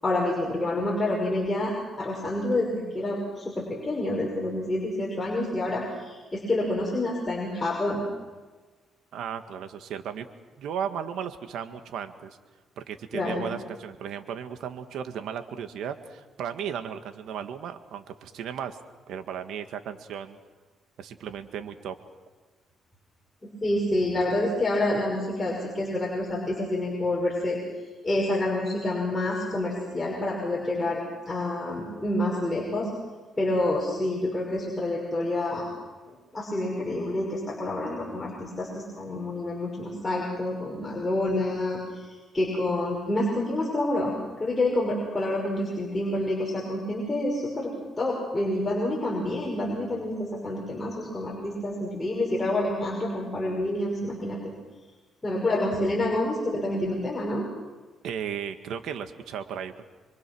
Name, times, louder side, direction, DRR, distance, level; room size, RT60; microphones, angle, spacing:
voice 1, 0.0-8.0 13.1-13.5 23.4-27.6 28.0-31.0 31.3-32.9 33.4-35.7 36.1-47.7 48.0-54.4 55.2-57.5, left 1 dB, 20° left, -3 dB, 6.0 m, -28 dB
voice 2, 9.1-10.3 10.6-12.4 12.8-18.8 19.1-20.4 21.0-21.9 58.0-59.8, right 8 dB, 80° right, 8 dB, 1.8 m, -35 dB
26.0 x 24.0 x 6.3 m, 1.3 s
cardioid pair, 90°, 0 cm